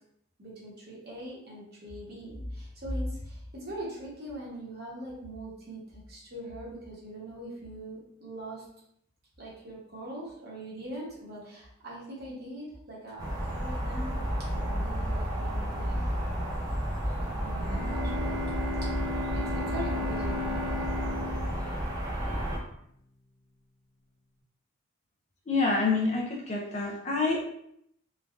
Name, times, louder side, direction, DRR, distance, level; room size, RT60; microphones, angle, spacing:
voice 1, 0.4-8.6 9.4-14.2 14.5-20.5, equal, 50° right, -4 dB, 0.9 m, -41 dB
sound 1, 13.2-22.6, equal, 15° right, 0.5 m, -32 dB
Bowed string instrument, 17.6-22.6, left 2 dB, 75° right, 0.6 m, -35 dB
voice 2, 25.5-27.4, left 3 dB, 30° left, -1 dB, 0.4 m, -27 dB
3.2 x 2.2 x 2.4 m, 0.71 s
head